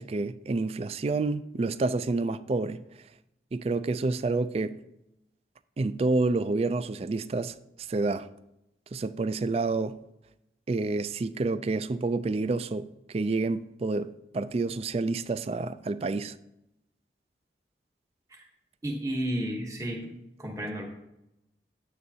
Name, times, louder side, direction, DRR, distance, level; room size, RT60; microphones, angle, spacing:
voice 1, 0.0-2.8 3.5-4.8 5.8-7.5 7.9-8.3 8.9-10.0 10.7-16.4, right 3 dB, 35° right, 0.3 m, -29 dB
voice 2, 18.8-20.1 20.4-20.8, right 1 dB, 20° right, 1.0 m, -32 dB
9.5 x 9.4 x 2.8 m
head